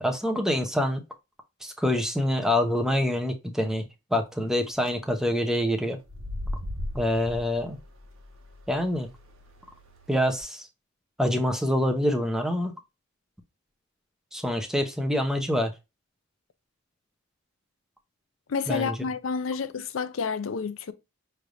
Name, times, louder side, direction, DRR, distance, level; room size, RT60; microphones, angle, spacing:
voice 1, 0.0-1.0 1.6-3.8 4.1-6.0 6.9-7.8 8.7-9.1 10.1-10.7 11.2-12.7 14.3-15.7 18.7-19.0, left 1 dB, 5° right, 0.7 m, -26 dB
sound 1, 4.5-4.9 6.0-10.4, left 1 dB, 70° right, 1.1 m, -38 dB
voice 2, 18.5-20.9, left 5 dB, 65° left, 0.5 m, -29 dB
5.9 x 3.3 x 2.5 m
head